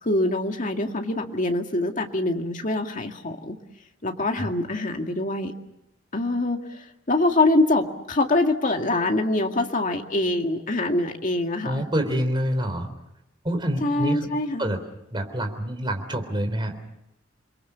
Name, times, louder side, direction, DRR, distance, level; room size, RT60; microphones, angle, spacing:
voice 1, 0.0-3.6 4.0-5.5 6.1-11.9 13.8-14.7, left 2 dB, 40° left, 4 dB, 2.1 m, -24 dB
voice 2, 11.6-12.9 13.4-14.3 14.6-14.8 15.1-16.7, equal, 25° right, 6 dB, 3.7 m, -26 dB
29.0 x 22.5 x 7.0 m, 0.84 s
head